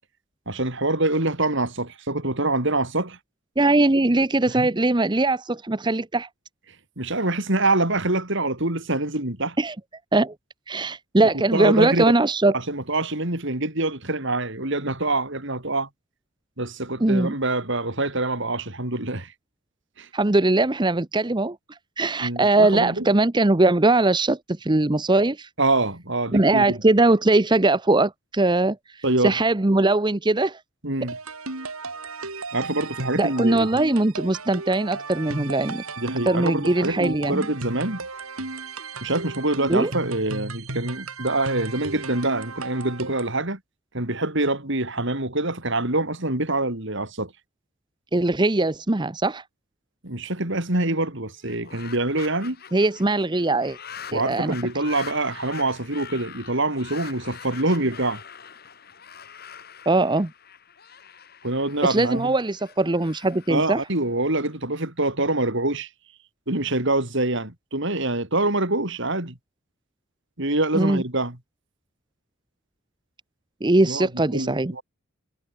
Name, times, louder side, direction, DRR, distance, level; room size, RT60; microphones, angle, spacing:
voice 1, 0.5-3.2 4.6-4.7 7.0-9.6 11.5-12.0 12.5-15.9 16.6-19.3 20.0-20.1 22.2-23.1 25.6-26.8 29.0-29.4 30.8-31.2 32.5-33.8 36.0-38.1 39.0-43.6 43.9-47.3 50.0-52.6 54.1-58.2 61.4-62.3 63.5-65.9 66.5-69.4 70.4-71.4 73.9-74.8, right 2 dB, 60° right, 4.2 m, -25 dB
voice 2, 3.6-6.3 9.6-9.7 10.1-10.3 10.7-12.6 17.0-17.3 20.1-25.5 26.3-30.6 33.2-35.8 36.3-37.4 39.7-39.9 48.1-49.4 52.7-53.8 54.1-54.6 59.9-60.3 61.8-63.8 70.7-71.0 73.6-74.8, right 2 dB, 20° right, 0.8 m, -21 dB
sound 1, 31.1-43.4, right 3 dB, 90° right, 4.5 m, -35 dB
sound 2, 51.4-64.5, left 7 dB, 45° left, 4.5 m, -44 dB
head